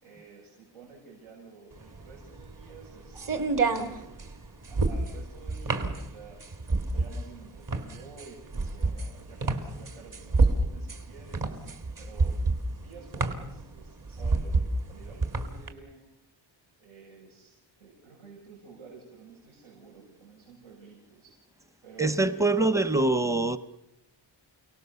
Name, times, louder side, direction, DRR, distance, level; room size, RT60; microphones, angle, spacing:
voice 1, 0.0-3.2 3.5-4.3 4.7-6.4 6.9-12.4 12.7-16.1 16.8-17.5 17.8-21.3 21.8-22.8, right 4 dB, 85° right, 7.1 m, -51 dB
sound 1, 1.8-15.7, right 3 dB, 45° right, 2.2 m, -28 dB
voice 2, 22.0-23.6, right 2 dB, 5° right, 0.7 m, -24 dB
29.5 x 18.5 x 7.0 m
wide cardioid pair, 180°, 47 cm